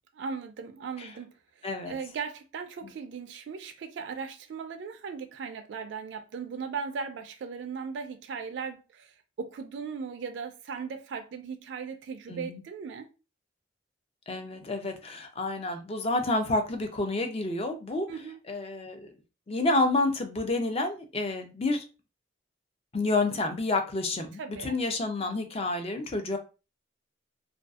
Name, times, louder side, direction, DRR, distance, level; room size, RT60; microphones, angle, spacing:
voice 1, 0.1-1.3 1.6-13.1 18.1-18.4 24.4-24.8, right 5 dB, 70° right, 0.3 m, -38 dB
voice 2, 1.6-1.9 12.3-12.6 14.3-18.1 18.5-19.1 19.5-21.8 22.9-26.4, left 2 dB, 30° left, 0.4 m, -29 dB
2.5 x 2.3 x 2.3 m
head